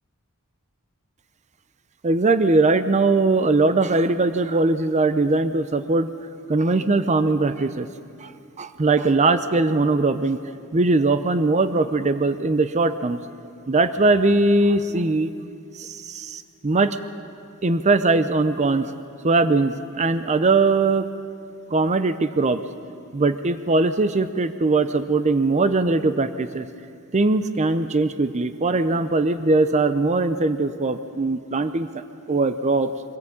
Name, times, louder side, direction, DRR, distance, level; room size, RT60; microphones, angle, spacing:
voice 1, 2.0-6.1 6.5-7.9 8.6-10.4 10.7-13.2 13.7-15.3 16.6-16.9 17.6-18.9 19.2-21.1 21.7-22.6 23.1-26.6 27.1-31.9 32.3-32.9, right 3 dB, 30° right, 11 dB, 0.6 m, -20 dB
24.0 x 14.5 x 8.6 m, 2.6 s
head